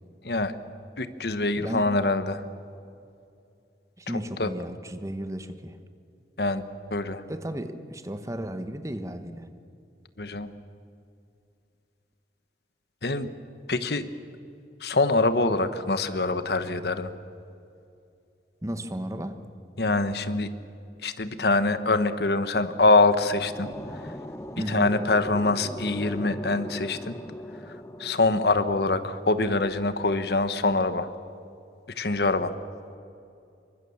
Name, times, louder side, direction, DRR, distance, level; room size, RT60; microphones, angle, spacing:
voice 1, 1.0-2.4 4.4-4.5 6.4-6.6 6.9-7.2 10.2-10.5 13.0-13.3 13.7-14.0 14.8-17.1 19.8-20.5 21.0-23.7 24.7-27.1 28.0-31.1 32.0-32.5, left 2 dB, 65° left, 11 dB, 1.3 m, -24 dB
voice 2, 1.5-1.9 4.0-5.8 7.3-9.5 18.6-19.4 24.6-24.9, equal, 20° right, 9 dB, 1.2 m, -34 dB
sound 1, 22.9-30.0, equal, 15° left, 0.9 m, -40 dB
27.0 x 24.0 x 7.2 m, 2.5 s
head